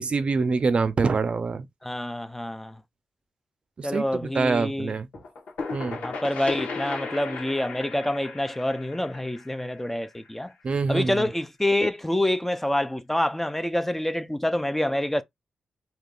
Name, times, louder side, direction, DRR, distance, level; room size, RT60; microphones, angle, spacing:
voice 1, 0.0-1.7 3.8-5.1 5.7-6.0 10.6-11.3, right 4 dB, 50° right, 0.5 m, -25 dB
voice 2, 1.8-2.7 3.8-4.9 6.0-10.5 10.9-15.2, left 1 dB, 10° left, 0.5 m, -27 dB
sound 1, 5.1-10.7, left 4 dB, 80° left, 1.2 m, -36 dB
3.6 x 2.8 x 2.4 m
cardioid pair, 65°, 3 cm